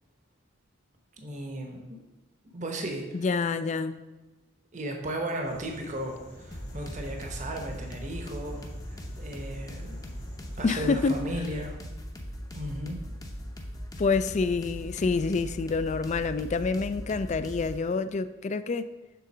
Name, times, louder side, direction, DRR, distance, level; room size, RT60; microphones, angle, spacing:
voice 1, 1.2-2.0 2.5-3.1 4.7-8.6 8.9-10.0 10.6-11.8 12.5-13.0, right 1 dB, 40° right, 2 dB, 0.9 m, -35 dB
voice 2, 3.1-4.0 10.6-11.2 14.0-18.9, left 4 dB, 35° left, 12 dB, 0.3 m, -27 dB
sound 1, 5.4-11.1, left 1 dB, 60° left, 1.7 m, -48 dB
sound 2, 6.5-17.8, equal, 20° left, 0.7 m, -40 dB
6.9 x 3.9 x 6.1 m, 1.2 s
head